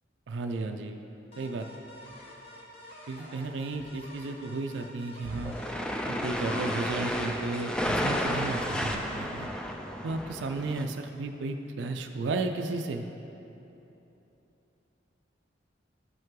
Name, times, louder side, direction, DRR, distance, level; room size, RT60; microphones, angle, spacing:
voice 1, 0.3-1.0 1.4-1.7 3.1-5.5 6.1-9.5 10.0-13.1, right 3 dB, 75° right, 5 dB, 0.4 m, -33 dB
sound 1, 1.3-6.7, left 1 dB, 30° left, 1.1 m, -49 dB
sound 2, 2.0-2.4 3.1-3.2 3.7-11.7, left 2 dB, 80° left, 1.1 m, -49 dB
sound 3, 5.2-10.8, equal, 5° left, 0.3 m, -32 dB
11.5 x 5.4 x 3.8 m, 3.0 s
head